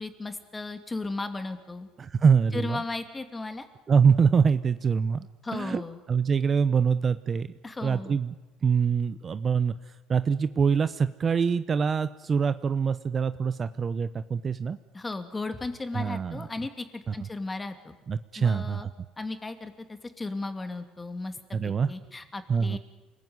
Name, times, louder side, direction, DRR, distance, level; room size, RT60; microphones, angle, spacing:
voice 1, 0.0-1.9 2.5-3.7 5.4-6.0 7.6-8.2 14.9-17.9 18.4-18.9 19.2-21.4 21.6-22.8, left 3 dB, 15° left, 8 dB, 2.6 m, -35 dB
voice 2, 2.0-2.8 3.9-5.3 5.5-5.8 6.1-7.5 7.8-8.3 8.6-9.7 10.1-14.8 15.9-16.4 17.1-17.2 18.1-18.9 21.5-21.9 22.5-22.8, right 6 dB, 30° right, 13 dB, 0.8 m, -24 dB
28.5 x 20.0 x 9.6 m, 1.2 s
cardioid pair, 135°, 0 cm